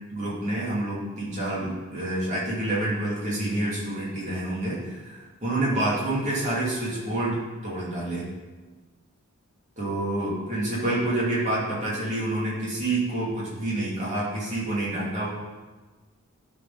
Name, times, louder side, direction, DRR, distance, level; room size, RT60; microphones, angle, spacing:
voice 1, 0.1-8.3 9.8-15.3, right 1 dB, 35° right, -7 dB, 2.7 m, -28 dB
11.0 x 4.6 x 4.1 m, 1.3 s
head